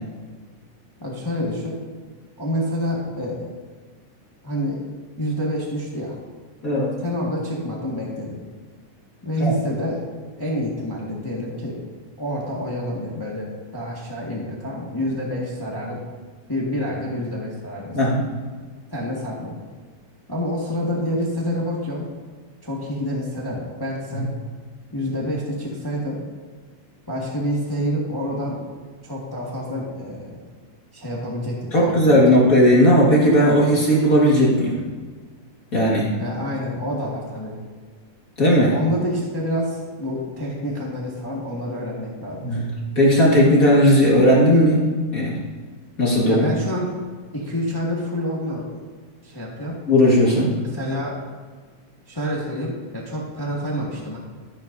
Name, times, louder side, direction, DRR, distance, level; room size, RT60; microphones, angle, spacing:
voice 1, 1.0-1.7 2.4-3.5 4.4-4.8 5.2-6.1 7.0-8.4 9.2-10.0 10.4-11.8 12.2-16.0 16.5-18.0 18.9-19.6 20.3-22.1 22.6-24.3 24.9-26.2 27.1-28.6 29.0-30.4 30.9-32.2 36.2-37.6 38.6-42.7 46.3-46.9 47.3-48.8 49.2-49.8 50.7-51.2 52.1-54.2, equal, 15° left, -4 dB, 0.9 m, -27 dB
voice 2, 6.6-6.9 9.4-9.5 17.9-18.2 31.7-34.8 35.7-36.1 38.4-38.7 42.4-42.7 42.9-44.8 45.1-45.4 46.0-46.5 49.9-50.5, equal, 35° left, -5 dB, 1.7 m, -16 dB
13.0 x 10.5 x 2.7 m, 1.5 s
omnidirectional pair, 3.4 m